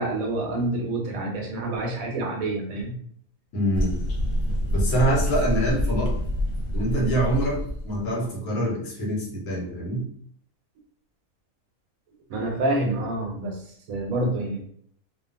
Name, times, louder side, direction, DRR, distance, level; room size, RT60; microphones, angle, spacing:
voice 1, 0.0-3.0 12.3-14.6, right 2 dB, 75° right, 1 dB, 1.1 m, -27 dB
voice 2, 3.5-4.0 4.7-6.1 6.7-7.6 7.8-10.1, right 1 dB, 90° left, -3 dB, 1.3 m, -25 dB
sound 1, 3.7-8.1, equal, 70° left, 0.9 m, -26 dB
2.7 x 2.2 x 2.5 m, 0.62 s
omnidirectional pair, 1.5 m